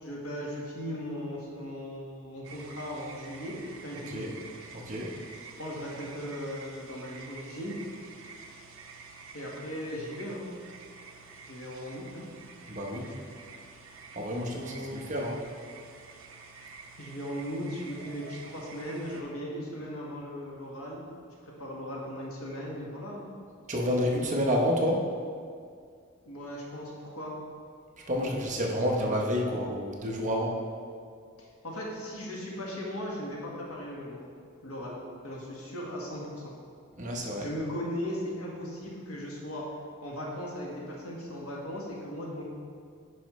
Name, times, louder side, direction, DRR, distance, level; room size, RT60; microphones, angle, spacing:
voice 1, 0.0-4.3 5.6-7.7 9.3-10.4 11.5-12.3 14.5-15.0 17.0-21.0 21.4-23.3 26.2-27.3 31.6-34.2 34.6-36.5 37.4-39.6 40.0-42.5, equal, 90° left, -3 dB, 1.5 m, -37 dB
sound 1, 2.4-19.2, right 4 dB, 70° right, 0.7 m, -49 dB
voice 2, 4.7-5.1 12.7-13.1 14.2-15.4 23.7-25.0 28.1-30.6 37.0-37.5, equal, 35° right, -1 dB, 0.9 m, -29 dB
9.7 x 5.2 x 3.1 m, 2.2 s
head